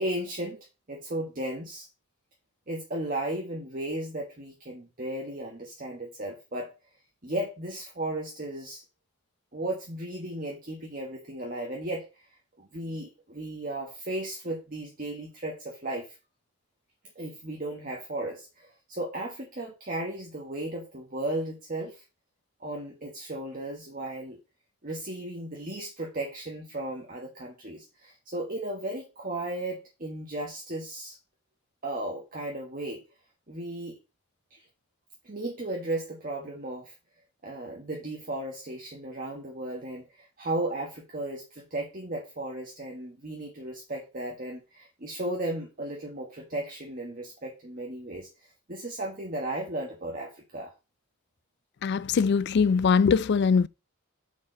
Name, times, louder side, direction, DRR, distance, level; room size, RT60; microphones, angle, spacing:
voice 1, 0.0-1.9 2.7-6.8 7.2-8.8 9.5-12.2 12.6-16.2 17.1-22.0 22.6-24.4 24.8-31.2 31.8-33.1 33.5-34.0 34.5-34.6 35.2-36.9 37.4-50.7, right 1 dB, 40° right, 1.3 m, -35 dB
voice 2, 51.8-53.7, left 5 dB, 50° left, 0.3 m, -22 dB
6.3 x 4.9 x 5.2 m
head